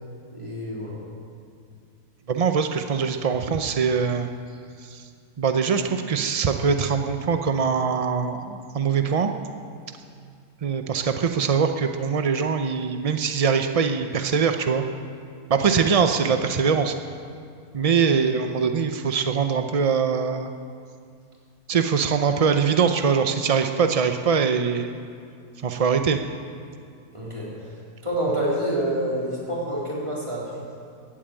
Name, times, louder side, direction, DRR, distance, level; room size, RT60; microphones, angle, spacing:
voice 1, 0.3-1.0 15.6-15.9 17.9-18.2 27.1-27.7 28.0-30.6, right 1 dB, 20° right, -6 dB, 3.8 m, -28 dB
voice 2, 2.3-4.3 4.8-5.0 5.4-9.3 10.6-14.8 15.5-16.9 17.7-20.5 21.7-24.9 25.6-26.2, right 6 dB, 70° right, 6 dB, 0.3 m, -22 dB
15.0 x 8.6 x 9.0 m, 2.3 s
omnidirectional pair, 1.6 m